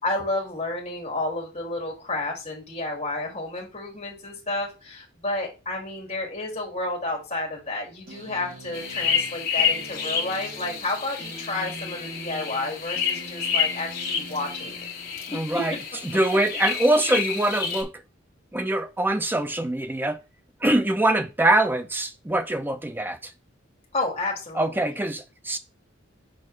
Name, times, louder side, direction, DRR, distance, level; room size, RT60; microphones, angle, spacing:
voice 1, 0.0-14.9 15.3-15.6 23.9-24.8, left 2 dB, 30° left, 2.5 m, -31 dB
sound 1, 8.1-15.5, right 1 dB, 45° right, 3.5 m, -44 dB
sound 2, 8.7-17.8, left 7 dB, 50° left, 1.5 m, -29 dB
voice 2, 15.3-15.7 16.0-17.9 18.5-20.2 20.6-23.3 24.5-25.6, right 1 dB, 10° right, 0.5 m, -23 dB
6.4 x 4.6 x 3.3 m
head